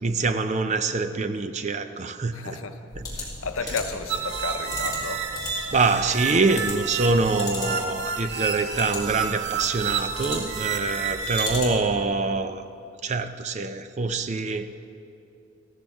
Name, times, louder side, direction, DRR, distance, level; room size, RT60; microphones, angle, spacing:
voice 1, 0.0-2.6 3.0-3.1 5.7-12.6 13.0-14.7, right 3 dB, 35° right, 0.4 m, -25 dB
voice 2, 2.3-2.9 3.1-5.3, left 4 dB, 75° left, 0.8 m, -33 dB
sound 1, 2.9-12.0, left 2 dB, 20° left, 2.6 m, -38 dB
sound 2, 4.1-11.6, right 6 dB, 50° right, 0.8 m, -30 dB
15.0 x 13.5 x 3.5 m
head